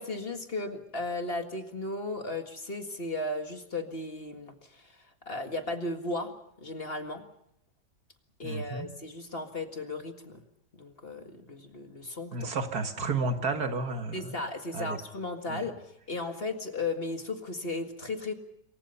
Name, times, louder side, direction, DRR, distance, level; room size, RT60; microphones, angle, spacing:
voice 1, 0.0-7.2 8.4-10.4 10.7-12.5 14.1-18.3, left 2 dB, 35° left, 5 dB, 2.1 m, -36 dB
voice 2, 8.4-8.9 12.3-14.4 14.7-15.0 15.5-15.7, right 3 dB, 65° right, 6 dB, 2.2 m, -32 dB
27.0 x 24.0 x 5.6 m, 0.75 s
omnidirectional pair, 1.8 m